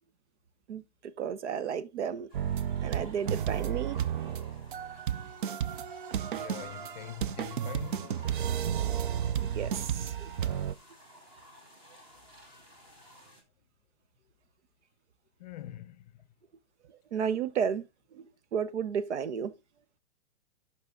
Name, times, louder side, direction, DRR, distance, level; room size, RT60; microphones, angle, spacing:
voice 1, 1.2-2.3 2.8-4.0 9.4-10.3 17.1-17.9 18.1-18.2 18.5-19.5, right 7 dB, 90° right, 0.9 m, -32 dB
sound 1, 2.3-13.4, left 1 dB, 15° right, 1.2 m, -55 dB
sound 2, 2.3-10.7, right 9 dB, 50° right, 0.4 m, -32 dB
voice 2, 6.2-8.4 15.4-16.3, left 12 dB, 40° left, 0.6 m, -45 dB
8.3 x 5.8 x 3.7 m
hypercardioid pair, 170°, 34 cm